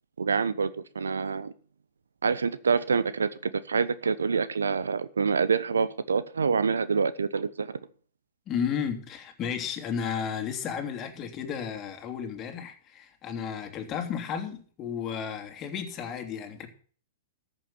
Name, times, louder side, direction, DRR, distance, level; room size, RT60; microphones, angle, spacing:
voice 1, 0.2-1.5 2.2-3.3 3.7-7.7, right 5 dB, 80° right, 1.0 m, -26 dB
voice 2, 8.5-16.7, left 7 dB, 30° left, 3.0 m, -33 dB
14.0 x 7.4 x 7.5 m
hypercardioid pair, 110°, 0 cm